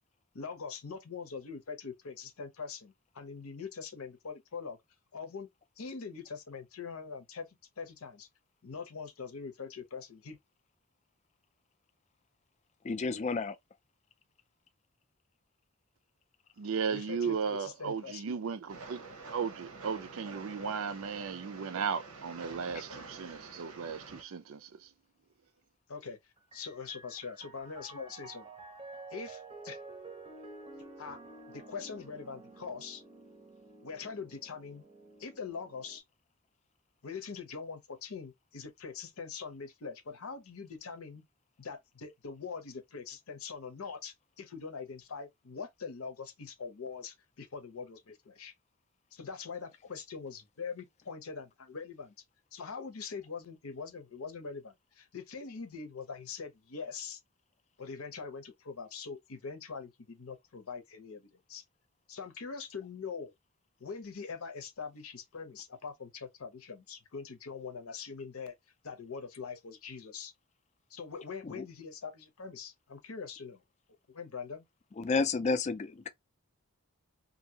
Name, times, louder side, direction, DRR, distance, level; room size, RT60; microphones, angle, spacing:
voice 1, 0.3-4.8 5.1-5.5 5.8-7.5 7.8-8.3 8.6-10.4 16.9-18.2 20.6-20.8 25.9-26.2 26.5-28.5 29.1-29.8 31.0-31.2 31.5-33.0 33.8-34.9 35.2-36.0 37.0-41.2 41.6-48.5 49.1-52.1 52.5-57.2 57.8-61.6 62.1-63.3 63.8-68.5 68.8-70.3 70.9-73.6 74.1-74.6, left 5 dB, 75° left, 0.8 m, -43 dB
voice 2, 12.8-13.6 71.4-71.6 75.0-76.1, left 4 dB, 30° left, 0.3 m, -31 dB
voice 3, 16.6-19.0 19.3-24.9, right 6 dB, 65° right, 0.4 m, -35 dB
Train, 18.7-24.2, right 3 dB, 85° right, 0.8 m, -48 dB
Piano, 26.4-36.0, right 3 dB, 25° right, 0.6 m, -50 dB
2.7 x 2.6 x 2.7 m
head